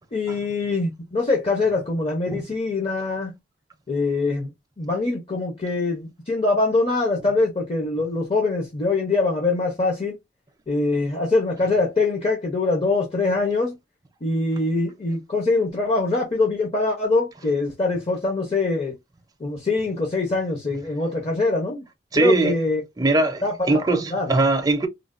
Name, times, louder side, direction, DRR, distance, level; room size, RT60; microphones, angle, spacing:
voice 1, 0.1-3.4 3.9-4.5 4.8-10.2 10.7-13.8 14.2-18.9 19.4-21.8 22.1-22.8 23.4-24.3, left 3 dB, 35° left, 0.7 m, -23 dB
voice 2, 22.1-22.6 23.0-24.9, right 2 dB, 20° right, 0.5 m, -21 dB
3.2 x 2.1 x 2.4 m
head